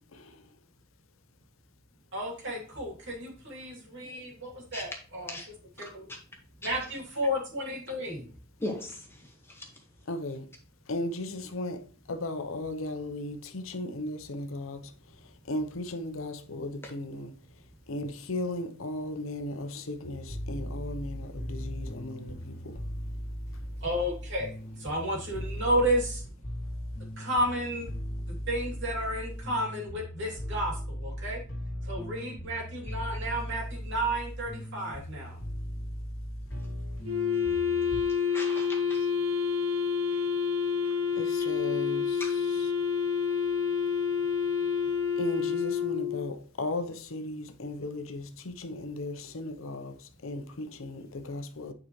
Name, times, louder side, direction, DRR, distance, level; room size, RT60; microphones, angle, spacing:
voice 1, 2.1-5.4 5.8-6.0 6.6-8.3 23.8-26.2 27.2-27.9 28.3-31.4 31.9-35.4, equal, 65° right, 2.9 m, -32 dB
voice 2, 8.6-9.2 9.5-9.7 16.8-16.9 38.3-39.0 40.1-40.2 42.2-42.3, left 1 dB, 10° left, 1.6 m, -38 dB
voice 3, 10.1-10.4 10.9-11.8 12.1-14.8 15.5-17.3 17.9-22.5 41.2-42.1 45.2-48.2 48.6-49.9 50.2-51.7, left 1 dB, 80° left, 0.8 m, -36 dB
sound 1, 20.0-38.0, equal, 50° left, 2.3 m, -38 dB
Wind instrument woodwind instrument, 37.0-46.3, left 6 dB, 80° right, 1.8 m, -28 dB
8.6 x 4.9 x 3.1 m
head